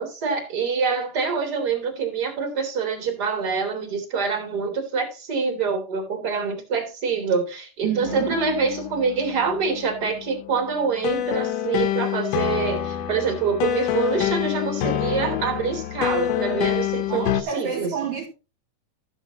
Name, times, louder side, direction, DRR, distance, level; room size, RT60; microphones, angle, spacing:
voice 1, 0.0-17.9, right 5 dB, 25° right, 3.2 m, -26 dB
voice 2, 7.8-8.4 17.1-18.4, right 8 dB, 60° right, 2.7 m, -29 dB
sound 1, 8.0-17.4, left 11 dB, 70° left, 2.4 m, -27 dB
14.5 x 8.3 x 2.9 m
omnidirectional pair, 4.3 m